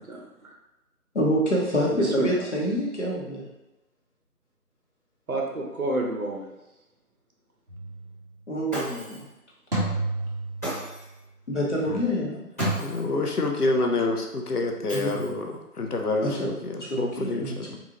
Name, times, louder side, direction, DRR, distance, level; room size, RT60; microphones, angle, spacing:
voice 1, 0.1-0.5 1.9-2.3 5.3-6.5, right 2 dB, 65° right, 0 dB, 0.9 m, -29 dB
voice 2, 1.1-3.4 8.5-9.3 11.5-12.5 14.9-15.2 16.2-16.3 16.7-17.8, equal, 50° left, -4 dB, 1.0 m, -27 dB
sound 1, 7.7-8.1 9.7-10.9 12.6-12.7, right 2 dB, 40° right, 0.9 m, -29 dB
Shatter, 8.7-9.3 10.6-11.2 12.6-13.1 14.9-15.5, equal, 10° left, 1.4 m, -36 dB
voice 3, 12.7-17.8, left 2 dB, 75° left, 3 dB, 0.7 m, -28 dB
3.8 x 2.4 x 2.9 m, 1.0 s
figure-of-eight pair, 165°, 46 cm